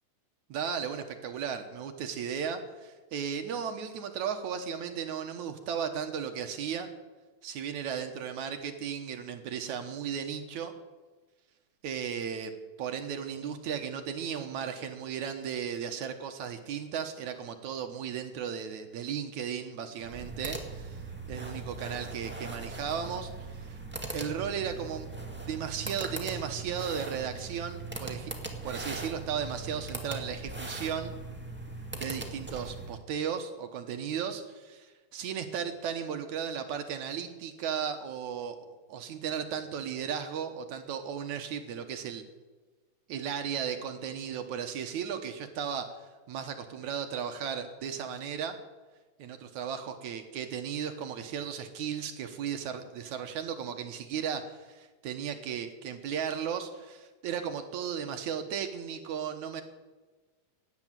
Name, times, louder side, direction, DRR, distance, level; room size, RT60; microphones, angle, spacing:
voice 1, 0.5-6.9 7.4-10.7 11.8-12.5 12.8-21.0 21.3-23.8 24.1-25.1 25.5-28.3 28.6-31.2 31.9-42.2 43.1-45.9 46.3-48.6 49.2-59.6, right 7 dB, 70° right, 7 dB, 2.5 m, -35 dB
sound 1, 20.0-33.0, right 2 dB, 5° right, 1.3 m, -40 dB
17.5 x 10.5 x 7.5 m, 1.3 s
omnidirectional pair, 3.7 m